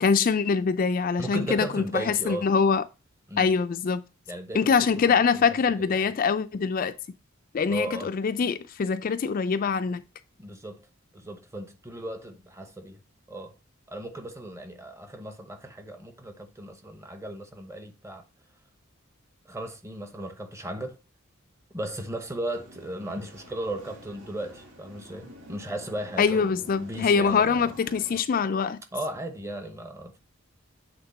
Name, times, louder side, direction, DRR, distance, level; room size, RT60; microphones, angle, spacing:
voice 1, 0.0-2.8 3.4-4.0 4.5-6.9 7.5-10.0 26.2-28.8, left 5 dB, 40° left, 0.3 m, -24 dB
voice 2, 1.2-2.5 3.3-3.5 4.3-5.4 5.8-6.1 7.7-8.1 10.4-10.8 11.1-13.0 13.3-13.6 13.9-18.2 19.5-21.0 21.7-27.7 28.9-30.2, right 1 dB, 15° right, 0.8 m, -36 dB
sound 1, 22.5-28.2, equal, 65° right, 2.4 m, -49 dB
7.9 x 3.6 x 4.1 m
head